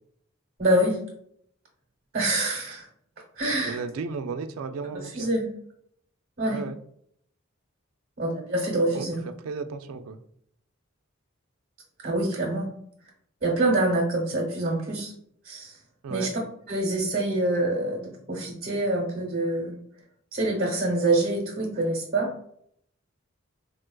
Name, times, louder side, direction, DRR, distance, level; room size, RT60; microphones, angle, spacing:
voice 1, 0.6-1.0 2.1-2.9 3.4-3.8 4.9-5.4 6.4-6.6 8.2-9.2 12.0-12.7 13.4-15.1 15.4-15.8 16.1-16.4 16.7-19.8 20.3-22.3, right 1 dB, 45° right, -4 dB, 0.8 m, -26 dB
voice 2, 3.6-5.3 6.4-6.8 8.9-9.1 9.4-10.2 16.0-16.3, right 4 dB, 80° right, 9 dB, 0.3 m, -34 dB
3.7 x 2.3 x 2.2 m, 0.68 s
head